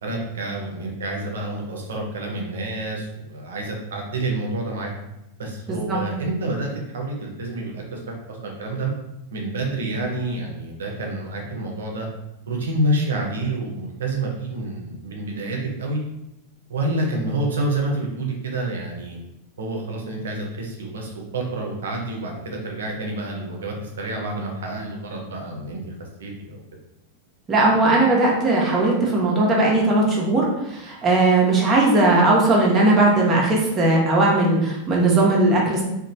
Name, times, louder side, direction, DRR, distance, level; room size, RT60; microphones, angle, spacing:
voice 1, 0.0-4.9 5.4-8.9 9.3-12.1 12.5-16.0 16.7-19.2 19.6-25.9 26.2-26.6, right 2 dB, 65° right, 0 dB, 0.6 m, -28 dB
voice 2, 5.7-6.0 27.5-35.8, right 2 dB, 25° right, -3 dB, 0.6 m, -18 dB
2.9 x 2.1 x 2.6 m, 0.88 s
figure-of-eight pair, 90°, 0 cm